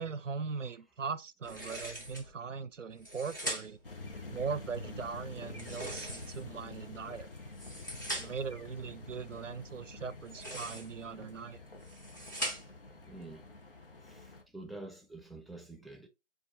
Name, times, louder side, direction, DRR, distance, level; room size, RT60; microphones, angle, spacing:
voice 1, 0.0-3.8 4.3-7.3 8.1-11.6, right 5 dB, 85° right, 0.6 m, -40 dB
sound 1, 1.4-2.3 2.9-3.9 5.5-6.6 7.4-8.5 10.2-11.0 11.7-12.9, right 1 dB, 15° left, 0.7 m, -41 dB
sound 2, 3.8-14.4, left 3 dB, 50° left, 1.0 m, -48 dB
voice 2, 13.0-13.5 14.0-16.1, right 2 dB, ahead, 0.3 m, -48 dB
7.2 x 2.6 x 2.5 m
figure-of-eight pair, 155°, 36 cm